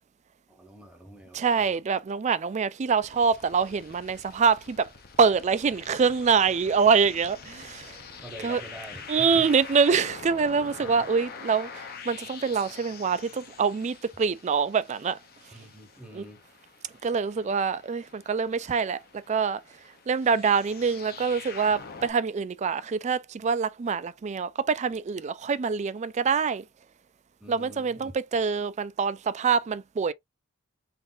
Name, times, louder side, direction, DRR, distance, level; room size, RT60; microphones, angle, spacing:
voice 1, 0.5-1.7 8.2-9.5 10.8-11.0 15.5-16.4 27.4-28.1, right 1 dB, 5° right, 0.8 m, -45 dB
voice 2, 1.3-4.9 5.2-8.0 8.4-8.6 9.1-15.2 16.1-16.2 17.0-19.0 19.3-19.6 20.1-26.6 27.5-30.1, right 5 dB, 30° right, 0.3 m, -25 dB
sound 1, 3.0-22.1, left 5 dB, 45° left, 0.8 m, -45 dB
3.8 x 2.5 x 3.7 m
head